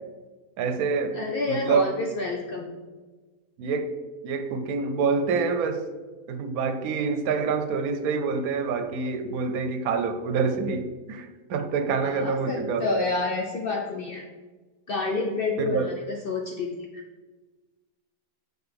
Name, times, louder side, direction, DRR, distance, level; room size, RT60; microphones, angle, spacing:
voice 1, 0.6-1.9 3.6-3.9 4.2-5.8 6.3-13.1 15.6-15.9, right 5 dB, 80° right, 8 dB, 1.1 m, -27 dB
voice 2, 1.1-2.7 12.0-14.3 14.9-17.0, left 3 dB, 60° left, 0 dB, 0.6 m, -29 dB
6.7 x 4.5 x 3.4 m, 1.3 s
omnidirectional pair, 1.6 m